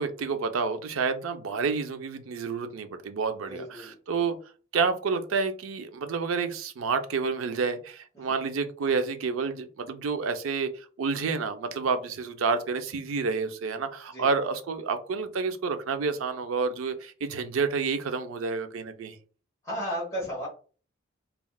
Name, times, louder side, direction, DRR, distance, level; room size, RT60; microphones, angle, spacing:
voice 1, 0.0-4.4 4.7-19.2, right 5 dB, 85° right, 8 dB, 0.4 m, -29 dB
voice 2, 3.4-4.0 8.1-8.3 14.1-14.3 19.6-20.5, equal, 20° left, -8 dB, 1.1 m, -34 dB
3.4 x 2.3 x 2.3 m, 0.39 s
head